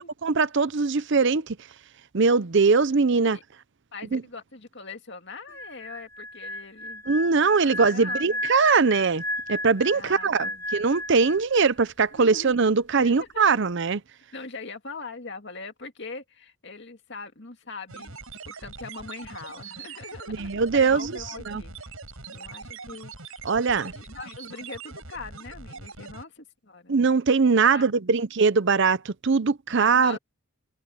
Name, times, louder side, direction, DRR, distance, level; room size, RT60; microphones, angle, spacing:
voice 1, 0.2-1.6 2.1-3.4 4.1-4.2 7.1-9.2 9.5-14.0 20.3-21.1 21.5-21.6 23.4-23.9 26.9-30.2, right 4 dB, 55° right, 0.6 m, -21 dB
voice 2, 3.9-7.0 7.6-8.4 9.9-10.6 12.1-12.6 13.0-13.5 14.3-18.2 18.5-21.9 22.3-23.1 23.7-27.0 27.6-27.9 29.7-30.2, left 4 dB, 50° left, 2.3 m, -41 dB
sound 1, 5.5-11.9 12.1-12.4, left 1 dB, 10° left, 0.5 m, -34 dB
sound 2, 17.9-26.2, right 4 dB, 70° right, 5.2 m, -42 dB
head